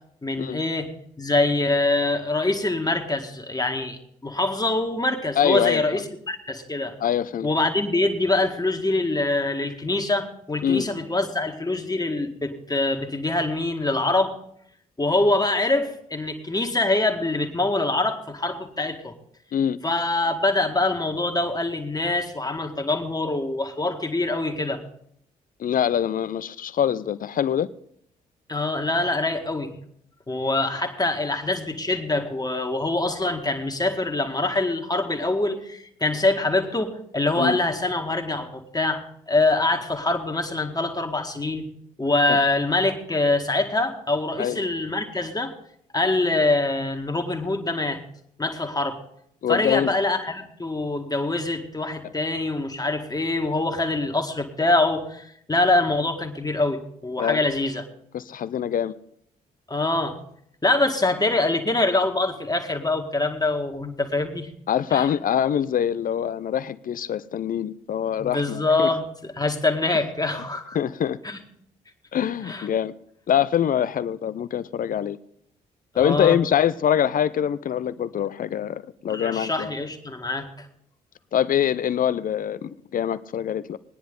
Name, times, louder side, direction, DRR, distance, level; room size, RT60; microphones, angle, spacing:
voice 1, 0.2-0.9 1.2-7.0 7.4-14.3 15.0-19.1 19.8-24.8 28.5-29.7 30.3-41.7 42.0-45.5 45.9-48.0 48.4-49.0 49.5-57.8 59.7-60.2 60.6-64.5 64.9-65.1 68.2-70.8 71.2-71.4 72.4-72.7 75.9-76.4 79.1-80.7, left 2 dB, 20° left, 1.9 m, -24 dB
voice 2, 5.4-6.0 7.0-7.5 10.6-10.9 19.5-19.8 25.6-27.7 37.3-37.6 42.3-42.4 44.4-44.6 49.4-49.9 57.2-57.4 58.1-59.0 64.7-68.9 70.7-71.2 72.1-72.9 73.3-75.2 76.0-79.7 81.3-83.8, left 9 dB, 45° left, 0.6 m, -24 dB
19.5 x 10.0 x 3.8 m
hypercardioid pair, 40°, 19 cm